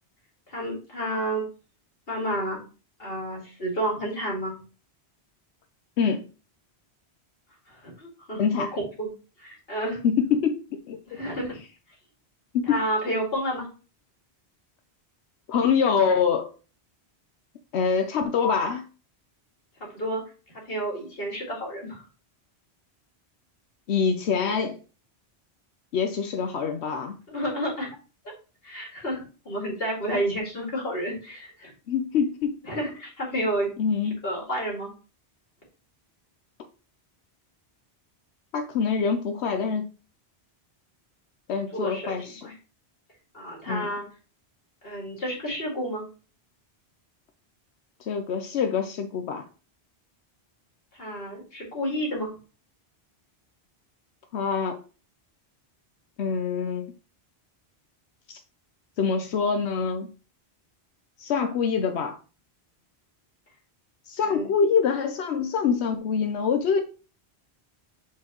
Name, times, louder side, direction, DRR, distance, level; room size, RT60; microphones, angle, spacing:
voice 1, 0.5-1.4 2.1-2.6 3.0-4.5 7.7-9.1 9.4-10.0 11.1-11.6 12.7-13.7 19.8-20.2 20.7-22.0 27.3-27.9 28.6-31.7 32.6-33.7 34.2-34.9 41.7-42.5 43.3-44.1 44.8-46.0 51.0-52.3 64.2-64.5, right 1 dB, 60° left, 2.4 m, -30 dB
voice 2, 8.4-8.7 10.0-10.6 10.9-11.0 12.5-12.8 15.5-16.5 17.7-18.8 23.9-24.8 25.9-27.2 31.9-32.6 33.8-34.2 38.5-39.9 41.5-42.5 43.7-43.9 48.1-49.4 54.3-54.8 56.2-56.9 58.3-58.4 59.0-60.1 61.2-62.2 64.1-66.8, left 6 dB, 80° left, 1.0 m, -25 dB
7.3 x 4.5 x 3.0 m
omnidirectional pair, 1.1 m